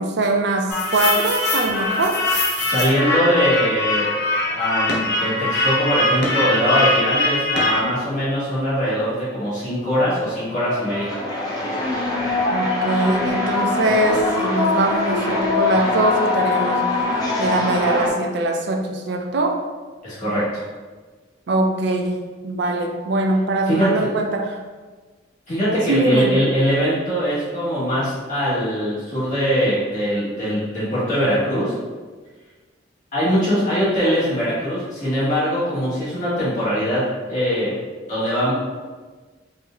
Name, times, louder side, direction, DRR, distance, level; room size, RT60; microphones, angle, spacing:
voice 1, 0.0-2.2 12.5-17.0 17.4-19.6 21.5-24.6 25.9-26.4, right 2 dB, 60° right, 2 dB, 0.4 m, -22 dB
sound 1, 0.7-7.8, left 1 dB, 60° left, 0.6 m, -22 dB
voice 2, 2.6-4.1 4.4-11.1 20.0-20.6 23.7-23.9 25.5-31.7 33.1-37.0 37.3-37.7 38.1-38.5, equal, 45° left, -11 dB, 1.5 m, -21 dB
sound 2, 10.5-18.1, left 3 dB, 20° left, 0.5 m, -23 dB
4.3 x 2.0 x 2.3 m, 1.4 s
head